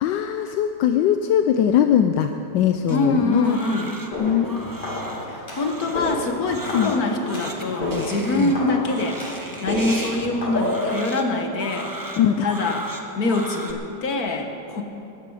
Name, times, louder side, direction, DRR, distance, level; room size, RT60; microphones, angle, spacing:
voice 1, 0.0-3.6 4.2-4.6 6.7-7.0 8.4-8.5 12.2-12.4, left 9 dB, 80° left, 8 dB, 1.3 m, -20 dB
voice 2, 2.9-4.0 5.2-9.2 9.6-11.9 12.4-12.9 13.2-14.8, left 2 dB, 55° left, 4 dB, 1.8 m, -24 dB
Crying sobbing, 2.9-13.7, right 1 dB, 15° right, 0.8 m, -36 dB
sound 1, 4.1-12.2, left 1 dB, 25° left, 2.5 m, -31 dB
19.0 x 13.5 x 4.9 m, 2.8 s
omnidirectional pair, 2.0 m